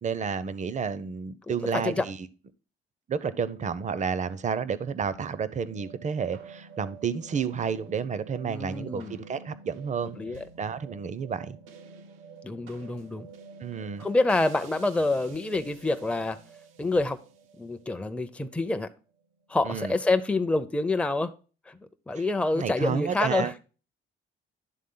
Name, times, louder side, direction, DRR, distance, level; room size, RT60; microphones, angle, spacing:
voice 1, 0.0-2.2 3.1-10.2 10.6-11.6 13.6-14.0 19.6-19.9 22.2-22.3 22.5-23.5, right 6 dB, 40° right, 0.6 m, -31 dB
voice 2, 1.5-2.0 8.4-9.2 10.2-10.4 12.4-13.3 14.0-16.4 16.8-17.2 17.6-18.9 19.5-21.3 21.7-21.8 22.1-23.5, left 2 dB, 5° left, 0.5 m, -27 dB
sound 1, 5.0-19.4, right 5 dB, 85° right, 0.7 m, -49 dB
11.0 x 3.7 x 3.7 m
cardioid pair, 90°, 20 cm